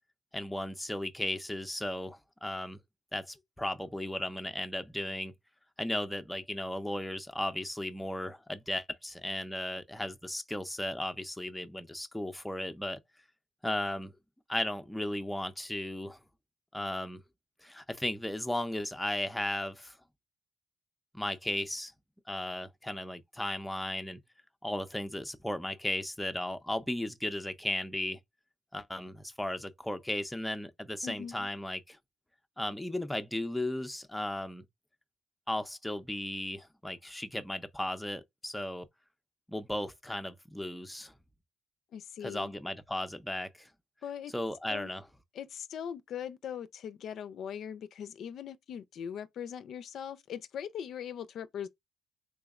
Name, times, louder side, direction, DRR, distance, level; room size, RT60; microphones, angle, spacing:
voice 1, 0.3-2.8 3.1-5.3 5.8-13.0 13.6-14.1 14.5-16.2 16.7-17.2 17.6-20.0 21.1-21.9 22.3-24.2 24.6-28.2 28.7-32.0 32.6-34.6 35.5-38.9 39.5-41.1 42.2-43.7 44.3-45.0, left 1 dB, 5° left, 0.5 m, -35 dB
voice 2, 31.0-31.5 41.9-42.5 44.0-44.3 44.7-44.9 45.3-51.7, left 8 dB, 70° left, 0.4 m, -40 dB
3.5 x 3.0 x 2.3 m
cardioid pair, 90°, 0 cm